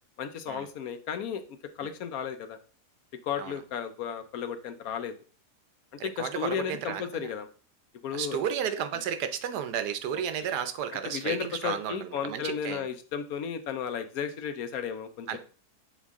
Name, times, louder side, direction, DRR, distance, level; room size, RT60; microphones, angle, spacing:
voice 1, 0.2-1.4 1.8-2.6 3.2-5.1 6.0-7.5 8.0-8.4 11.0-15.4, left 7 dB, 70° left, 9 dB, 1.0 m, -34 dB
voice 2, 6.0-7.3 8.1-12.9 15.3-15.4, right 8 dB, 80° right, 10 dB, 1.3 m, -33 dB
7.3 x 3.8 x 3.5 m, 0.38 s
omnidirectional pair, 1.7 m